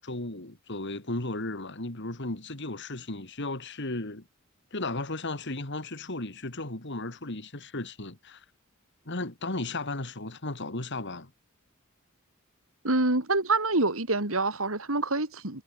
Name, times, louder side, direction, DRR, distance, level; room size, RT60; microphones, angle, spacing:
voice 1, 0.0-4.3 4.7-8.4 9.0-11.3, left 2 dB, 60° left, 3.0 m, -35 dB
voice 2, 12.8-15.6, right 2 dB, 75° right, 3.5 m, -26 dB
head